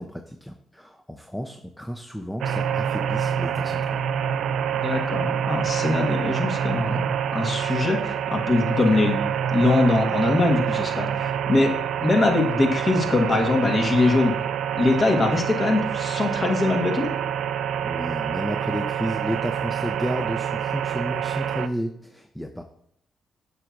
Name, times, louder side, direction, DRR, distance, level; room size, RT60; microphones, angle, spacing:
voice 1, 0.0-4.0 17.8-22.6, equal, 5° left, 5 dB, 0.6 m, -32 dB
sound 1, 2.4-21.7, right 8 dB, 80° right, 0.3 m, -26 dB
voice 2, 4.7-9.2 9.5-11.7 12.0-14.5 14.7-17.1, left 2 dB, 45° left, 3 dB, 1.5 m, -22 dB
7.6 x 5.9 x 2.6 m, 0.70 s
cardioid pair, 70°, 0 cm